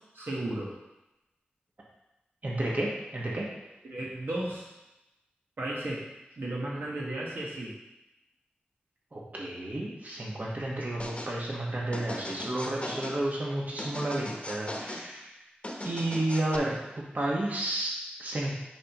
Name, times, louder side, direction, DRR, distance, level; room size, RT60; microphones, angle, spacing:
voice 1, 0.1-0.8 3.8-4.7 5.6-6.1 6.4-7.7, right 1 dB, 80° right, -5 dB, 1.5 m, -34 dB
voice 2, 2.4-3.4 9.1-15.3 15.8-18.5, right 1 dB, 45° right, -4 dB, 1.4 m, -31 dB
sound 1, 11.0-11.3 11.9-13.2 13.8-15.1 15.6-16.6, left 1 dB, 30° left, 1.0 m, -38 dB
9.6 x 3.7 x 3.0 m, 0.95 s
cardioid pair, 45°, 4 cm